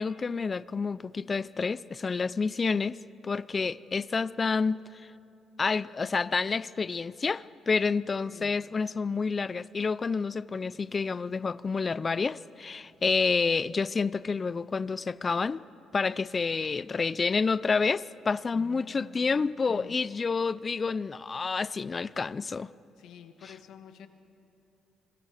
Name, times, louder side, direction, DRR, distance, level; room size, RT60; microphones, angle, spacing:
voice 1, 0.0-3.0 3.2-4.8 5.6-15.6 15.9-22.7, left 4 dB, 35° left, 19 dB, 0.4 m, -29 dB
voice 2, 18.5-20.0 23.0-24.1, left 8 dB, 80° left, 8 dB, 1.3 m, -49 dB
26.0 x 21.5 x 4.9 m, 2.9 s
cardioid pair, 90°, 0 cm